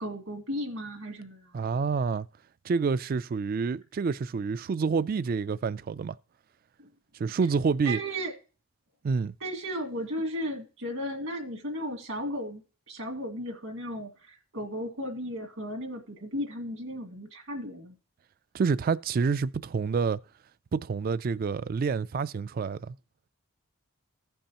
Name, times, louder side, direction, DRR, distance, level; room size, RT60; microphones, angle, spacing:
voice 1, 0.0-1.7 7.9-8.3 9.4-12.6 12.9-18.0, equal, 75° right, 1.8 m, -35 dB
voice 2, 1.5-2.3 2.6-6.2 7.2-8.0 9.0-9.3 18.5-20.2 20.7-23.0, right 5 dB, 45° right, 0.3 m, -28 dB
16.0 x 5.4 x 2.9 m
head